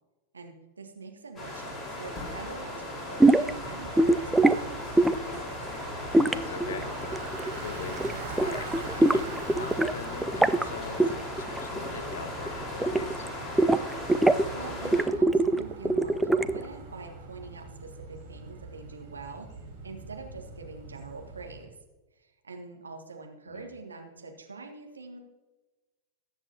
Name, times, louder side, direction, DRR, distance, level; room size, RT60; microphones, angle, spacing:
voice 1, 0.3-4.8 14.5-19.5 19.8-21.7 22.2-25.2, right 4 dB, 75° right, 3 dB, 1.6 m, -44 dB
sound 1, 1.4-15.0, left 1 dB, 15° left, 4.5 m, -37 dB
sound 2, 3.2-3.5 4.0-4.6 5.0-5.3 6.1-7.6 7.9-8.1 8.4-9.9 10.2-10.6 11.0-11.9 12.1-13.3 13.6-14.5 14.8-16.7, right 2 dB, 5° right, 0.4 m, -23 dB
Bicycle, 3.4-21.6, right 3 dB, 45° right, 4.2 m, -44 dB
voice 2, 6.1-7.1 7.5-13.3 23.5-23.8, left 6 dB, 65° left, 13 dB, 0.8 m, -43 dB
21.0 x 8.0 x 2.9 m, 1.2 s
figure-of-eight pair, 90°, 0 cm